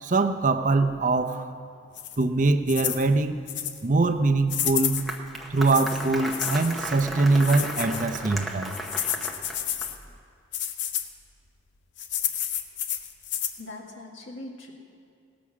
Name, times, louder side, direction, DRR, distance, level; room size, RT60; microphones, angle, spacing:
voice 1, 0.0-1.5 2.2-3.5 3.8-5.1 5.5-8.8, right 3 dB, 40° right, 8 dB, 0.6 m, -23 dB
sound 1, 2.0-2.2 2.7-3.1 3.5-3.8 4.5-5.2 5.7-6.8 7.3-8.1 8.7-10.0 10.5-11.1 12.0-13.6, left 10 dB, 70° left, 0.7 m, -30 dB
Applause, 4.6-10.1, right 1 dB, ahead, 0.8 m, -35 dB
voice 2, 13.6-14.7, left 2 dB, 85° left, 0 dB, 1.9 m, -41 dB
18.0 x 6.1 x 7.3 m, 2.4 s
head